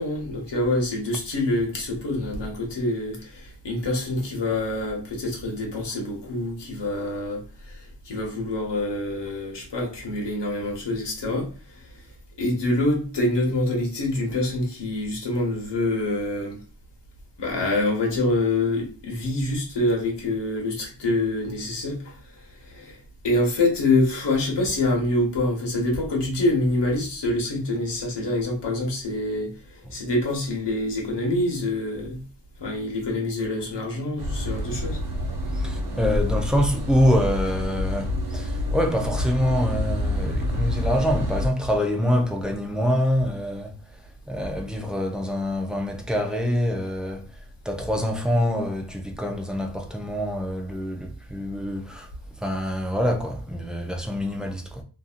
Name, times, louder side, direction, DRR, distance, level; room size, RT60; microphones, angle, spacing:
voice 1, 0.0-7.8 8.0-11.9 12.4-16.6 17.4-22.2 22.6-23.0 23.2-29.5 29.9-32.2 32.6-35.0, left 2 dB, 80° left, 1.1 m, -26 dB
sound 1, 34.2-41.5, left 1 dB, 60° right, 0.8 m, -27 dB
voice 2, 35.5-43.7 44.3-47.3 47.6-52.1 52.4-54.8, equal, ahead, 0.4 m, -25 dB
2.7 x 2.6 x 2.4 m
wide cardioid pair, 115°, 42 cm